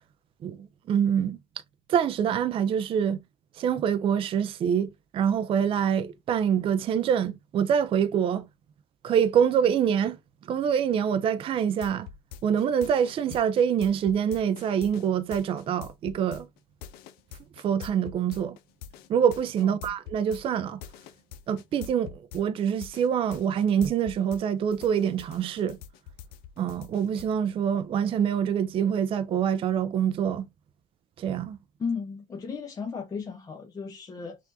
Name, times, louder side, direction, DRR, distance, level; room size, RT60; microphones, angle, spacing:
voice 1, 0.4-1.4 1.9-3.2 3.6-8.5 9.0-10.2 10.5-12.1 12.4-16.5 17.6-18.6 19.1-20.8 21.5-25.8 26.6-30.5 31.2-31.6, right 8 dB, 30° right, 0.4 m, -25 dB
sound 1, 11.6-24.4 24.7-27.3, left 9 dB, 65° left, 0.6 m, -44 dB
voice 2, 31.8-34.4, left 5 dB, 20° left, 0.7 m, -35 dB
5.9 x 2.5 x 2.6 m
supercardioid pair, 115°, 17 cm